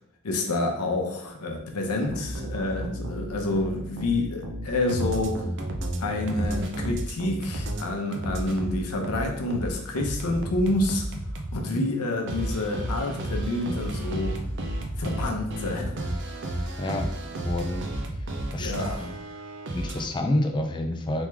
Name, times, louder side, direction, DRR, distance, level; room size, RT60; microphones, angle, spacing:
voice 1, 0.2-5.4 6.0-11.1 11.5-14.3 15.0-16.7 18.6-19.0, left 2 dB, 90° left, 2 dB, 0.8 m, -28 dB
sound 1, 2.1-7.8 8.1-11.6 12.3-20.1, right 1 dB, 55° right, 0.5 m, -32 dB
voice 2, 16.8-17.1 17.4-17.9 18.2-19.1 19.7-21.3, left 1 dB, 20° left, 5 dB, 0.4 m, -29 dB
3.5 x 3.1 x 3.4 m, 0.76 s
head